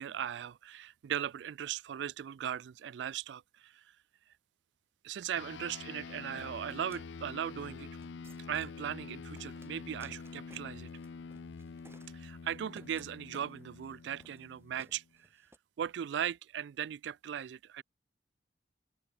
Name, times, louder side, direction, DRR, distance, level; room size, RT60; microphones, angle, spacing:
voice 1, 0.0-3.7 5.0-7.9 8.5-10.9 12.1-15.0 15.8-17.8, right 9 dB, 65° right, 0.3 m, -38 dB
sound 1, 5.4-15.1, left 5 dB, 70° left, 0.5 m, -47 dB
sound 2, 6.4-15.6, right 2 dB, 15° right, 3.9 m, -61 dB
open air
head